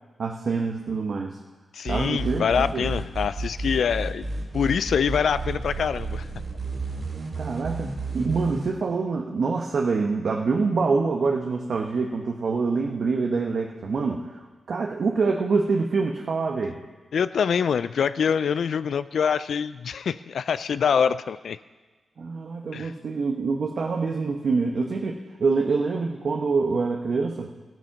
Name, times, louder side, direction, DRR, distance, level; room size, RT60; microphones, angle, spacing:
voice 1, 0.2-1.4 1.8-2.9 7.4-14.2 14.7-16.8 22.2-27.5, right 4 dB, 60° right, 1 dB, 1.0 m, -25 dB
voice 2, 1.7-4.3 4.5-6.3 17.1-21.6 22.7-22.9, left 7 dB, 75° left, 14 dB, 0.3 m, -25 dB
sound 1, 1.9-8.7, right 2 dB, 45° right, 3.2 m, -31 dB
15.0 x 9.2 x 5.9 m, 1.3 s
cardioid pair, 90°, 0 cm